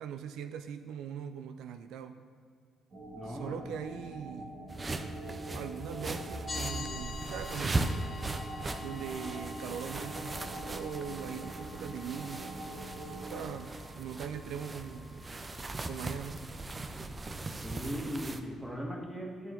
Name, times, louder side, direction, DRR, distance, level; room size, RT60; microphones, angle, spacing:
voice 1, 0.0-2.2 3.2-4.8 5.5-8.2 8.8-15.3 15.9-16.4, right 8 dB, 85° right, 9 dB, 0.3 m, -41 dB
sound 1, 2.9-13.4, right 1 dB, 50° right, 1.9 m, -44 dB
voice 2, 3.1-3.6 4.8-5.1 17.6-19.5, equal, 5° right, 0 dB, 1.5 m, -39 dB
sound 2, 4.7-18.4, right 2 dB, 25° right, 0.5 m, -39 dB
sound 3, 6.5-16.5, left 4 dB, 30° left, 0.5 m, -48 dB
12.0 x 4.5 x 3.8 m, 2.2 s
cardioid pair, 90°, 0 cm